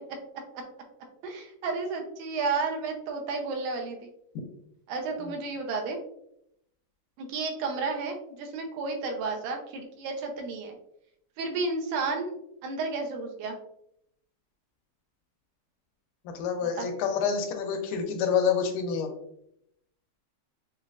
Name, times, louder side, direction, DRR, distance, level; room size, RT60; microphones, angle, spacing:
voice 1, 1.2-4.1 4.9-6.0 7.2-10.8 11.4-12.4 12.6-13.6 16.6-16.9, right 4 dB, 85° right, 2 dB, 2.1 m, -32 dB
voice 2, 16.3-19.1, left 6 dB, 85° left, 4 dB, 2.2 m, -27 dB
6.3 x 2.4 x 2.4 m, 0.75 s
omnidirectional pair, 3.7 m